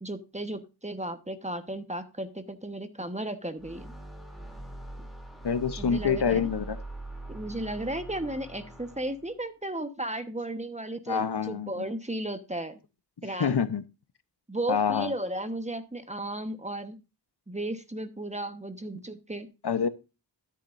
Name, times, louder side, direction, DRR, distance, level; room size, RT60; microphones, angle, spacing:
voice 1, 0.0-3.9 5.8-6.5 7.3-12.7 13.2-13.6 14.5-17.0 17.5-19.5, right 1 dB, 15° right, 9 dB, 1.2 m, -34 dB
sound 1, 3.6-9.3, right 2 dB, ahead, 3.0 m, -42 dB
voice 2, 5.4-6.8 11.1-11.9 13.4-13.8 14.7-15.1 19.6-19.9, left 6 dB, 65° left, 12 dB, 1.0 m, -26 dB
13.0 x 8.7 x 2.6 m, 0.28 s
wide cardioid pair, 80°, 43 cm